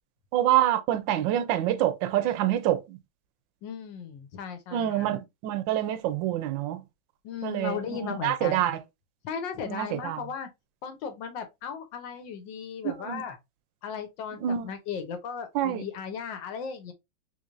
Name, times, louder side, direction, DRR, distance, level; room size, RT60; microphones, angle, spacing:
voice 1, 0.3-3.0 4.7-6.8 7.4-7.8 8.2-8.8 9.7-10.2 13.1-13.2 14.4-14.6 15.5-15.8, right 12 dB, 80° right, 1.3 m, -26 dB
voice 2, 3.6-5.1 7.2-8.7 9.2-10.5 10.8-13.4 13.8-16.9, left 7 dB, 80° left, 1.4 m, -36 dB
3.9 x 3.1 x 2.4 m
omnidirectional pair, 2.0 m